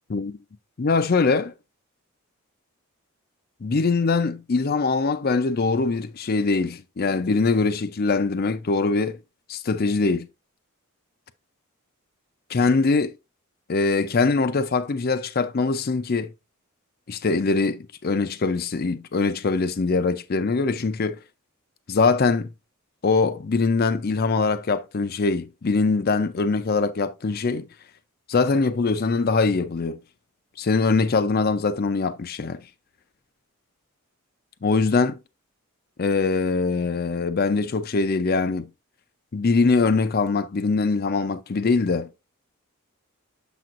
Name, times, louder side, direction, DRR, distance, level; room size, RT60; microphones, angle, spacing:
voice 1, 0.8-1.5 3.6-9.2 9.5-10.3 12.5-13.1 13.7-16.3 17.1-21.2 21.9-22.5 23.0-27.7 28.3-30.0 30.6-32.6 34.6-35.2 36.0-38.7 39.3-42.1, left 4 dB, 45° left, 0.5 m, -22 dB
6.9 x 6.0 x 2.5 m
head